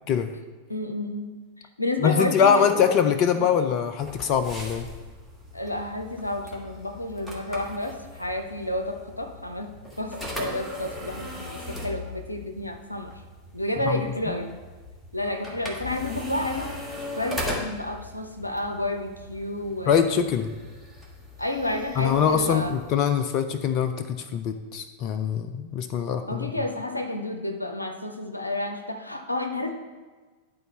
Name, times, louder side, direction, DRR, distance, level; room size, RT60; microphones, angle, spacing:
voice 1, 0.7-1.3 1.8-2.8 3.4-3.5 5.5-9.7 10.0-13.1 13.5-14.6 15.1-16.8 17.2-20.0 21.4-22.7 26.3-29.7, left 1 dB, 85° left, 6 dB, 0.6 m, -30 dB
voice 2, 2.0-4.9 13.8-14.0 19.9-20.5 22.0-26.5, left 7 dB, 40° left, 9 dB, 0.4 m, -23 dB
sound 1, 4.0-23.0, left 1 dB, 5° left, 1.5 m, -39 dB
11.0 x 4.0 x 4.2 m, 1.3 s
figure-of-eight pair, 90°, 0 cm